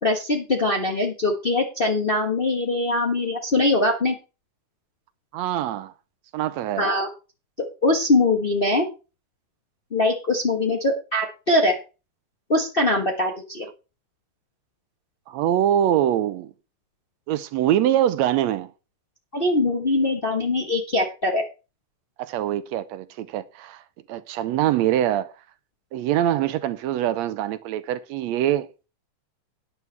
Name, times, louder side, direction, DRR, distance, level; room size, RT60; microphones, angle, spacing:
voice 1, 0.0-4.1 6.8-7.1 7.8-8.9 9.9-11.8 12.5-13.7 19.3-21.4, left 2 dB, 60° left, 0.5 m, -22 dB
voice 2, 5.3-5.9 6.3-6.9 15.3-16.5 17.3-18.7 22.2-23.8 24.1-25.3 25.9-28.9, right 11 dB, 75° right, 1.7 m, -24 dB
12.0 x 9.9 x 3.4 m
omnidirectional pair, 3.6 m